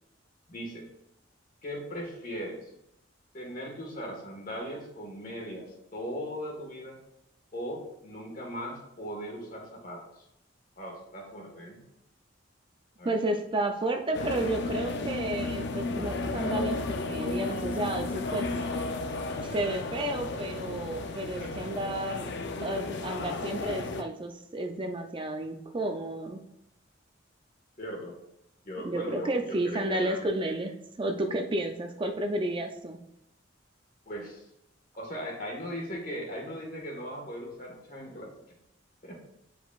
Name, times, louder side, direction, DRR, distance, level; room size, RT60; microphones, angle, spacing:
voice 1, 0.5-0.9 1.6-2.7 3.3-7.0 7.5-10.2 10.8-11.8 13.0-13.2 21.4-21.5 21.8-21.9 27.8-28.2 28.6-30.4 34.1-34.5 35.0-38.3 39.0-39.2, equal, 45° left, 0 dB, 1.7 m, -38 dB
voice 2, 13.0-18.5 19.4-22.3 22.6-26.4 28.8-33.0, right 1 dB, 25° right, 5 dB, 0.5 m, -32 dB
sound 1, 14.1-24.0, left 3 dB, 60° left, 0.5 m, -33 dB
8.1 x 5.0 x 2.4 m, 0.80 s
head